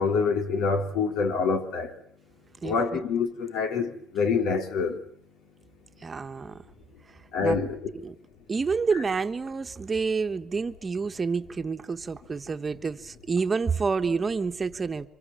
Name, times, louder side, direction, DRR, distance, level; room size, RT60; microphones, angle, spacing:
voice 1, 0.0-1.9 2.6-5.0 7.3-7.8, left 5 dB, 90° left, 3.9 m, -26 dB
voice 2, 2.6-3.0 6.0-6.6 7.1-7.6 8.0-8.1 8.5-15.1, right 5 dB, 25° right, 1.2 m, -29 dB
29.5 x 25.5 x 7.5 m
cardioid pair, 140°, 0 cm